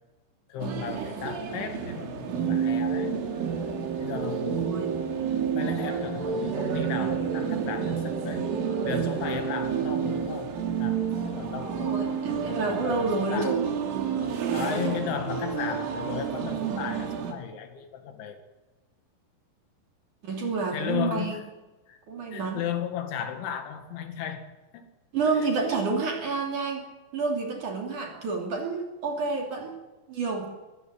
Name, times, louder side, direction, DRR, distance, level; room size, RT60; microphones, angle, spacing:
voice 1, 0.5-3.1 4.0-4.9 5.5-8.5 8.8-12.2 12.5-13.6 14.5-18.4 20.7-21.4 21.9-22.0 22.3-24.4 24.7-24.8 25.3-25.5, left 8 dB, 75° left, 6 dB, 4.4 m, -35 dB
sound 1, 0.6-17.3, right 7 dB, 85° right, 5.0 m, -29 dB
voice 2, 4.4-4.9 11.6-13.7 14.7-15.0 20.2-21.4 22.1-22.6 25.1-26.8 27.1-29.7 30.1-30.5, right 4 dB, 45° right, 1 dB, 3.9 m, -29 dB
21.5 x 17.0 x 7.5 m, 1.2 s
omnidirectional pair, 5.5 m